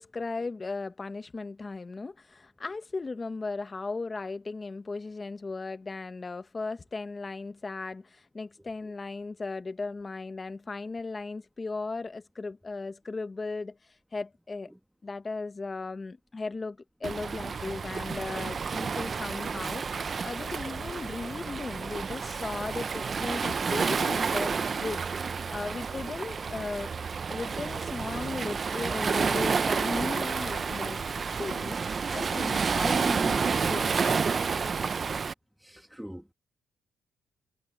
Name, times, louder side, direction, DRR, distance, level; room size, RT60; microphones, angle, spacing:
voice 1, 0.0-14.7 15.0-25.1 25.5-26.9 27.3-34.2, left 3 dB, 25° left, 1.4 m, -37 dB
voice 2, 8.6-8.9 14.7-14.8 19.1-19.2 19.6-19.7 20.4-20.5 35.6-36.3, equal, ahead, 1.9 m, -46 dB
Waves surf, 17.0-35.3, right 5 dB, 40° right, 0.6 m, -30 dB
cardioid pair, 90°, 0 cm